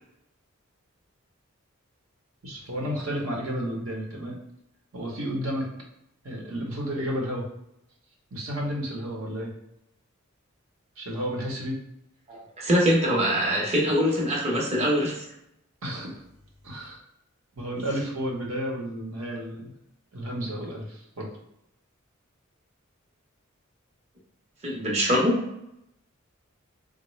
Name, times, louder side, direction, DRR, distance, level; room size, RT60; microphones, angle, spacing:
voice 1, 2.4-4.3 4.9-5.7 6.2-7.4 8.3-9.5 11.0-11.8 15.8-16.2 16.6-17.0 17.6-19.7 20.1-21.3, equal, 80° right, -1 dB, 0.9 m, -32 dB
voice 2, 12.3-15.3 24.6-25.4, equal, 30° right, -3 dB, 0.7 m, -23 dB
3.7 x 2.0 x 3.1 m, 0.82 s
head